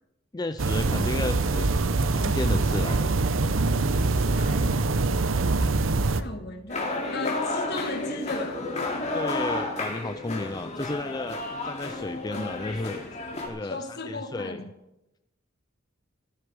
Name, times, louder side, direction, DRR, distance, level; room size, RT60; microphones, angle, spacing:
voice 1, 0.3-1.7 2.1-3.1 9.1-13.0 13.5-14.6, left 2 dB, 20° left, 0.4 m, -33 dB
sound 1, 0.6-6.2, right 3 dB, 85° right, 0.8 m, -24 dB
voice 2, 4.3-5.2 6.2-6.8 7.1-8.6 12.3-12.5 13.6-14.7, left 2 dB, 55° left, 1.6 m, -36 dB
sound 2, 6.7-13.5, left 2 dB, 35° left, 2.7 m, -31 dB
15.5 x 13.5 x 4.9 m
head